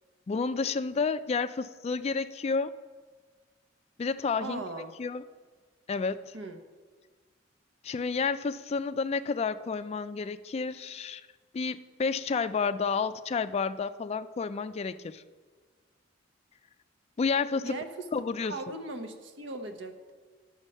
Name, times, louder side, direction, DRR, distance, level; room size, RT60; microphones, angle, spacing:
voice 1, 0.3-2.7 4.0-4.6 5.0-5.2 5.9-6.3 7.8-11.2 11.5-15.2 17.2-17.7 18.1-18.6, left 5 dB, 35° left, 13 dB, 0.3 m, -30 dB
voice 2, 4.4-4.9 6.3-6.6 17.6-18.1 18.5-20.1, right 2 dB, 75° right, 7 dB, 1.0 m, -38 dB
11.5 x 7.1 x 5.4 m, 1.5 s
head